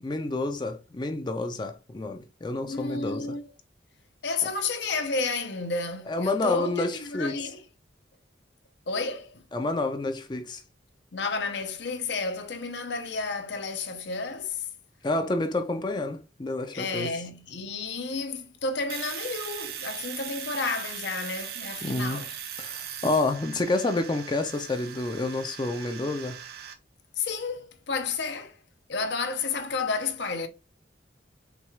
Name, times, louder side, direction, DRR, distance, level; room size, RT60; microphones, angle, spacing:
voice 1, 0.0-3.3 6.1-7.4 9.5-10.6 15.0-17.1 21.8-22.2 22.6-26.4, left 2 dB, 25° left, 0.4 m, -29 dB
voice 2, 2.6-3.5 4.2-7.6 8.9-9.4 11.1-14.7 16.7-22.3 27.2-28.6 28.9-30.5, left 4 dB, 70° left, 0.7 m, -31 dB
Domestic sounds home sounds, 18.9-26.7, right 9 dB, 55° right, 0.7 m, -39 dB
6.0 x 2.3 x 3.1 m
head